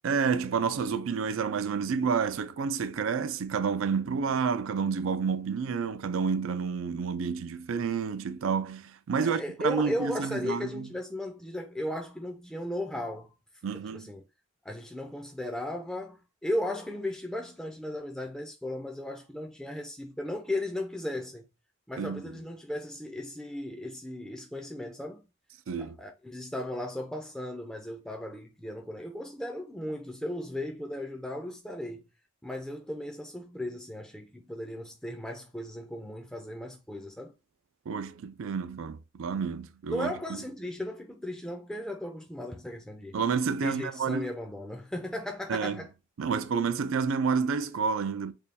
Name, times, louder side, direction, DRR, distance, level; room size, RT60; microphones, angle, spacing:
voice 1, 0.0-10.9 13.6-14.1 22.0-22.2 25.7-25.9 37.9-40.1 43.1-44.3 45.5-45.8 46.2-48.3, right 5 dB, 85° right, 0.4 m, -29 dB
voice 2, 9.2-13.3 13.9-14.2 14.6-21.5 21.9-25.2 25.8-32.0 32.4-37.3 39.9-43.2 43.6-45.9, left 1 dB, 5° left, 0.4 m, -36 dB
3.3 x 2.3 x 4.0 m
head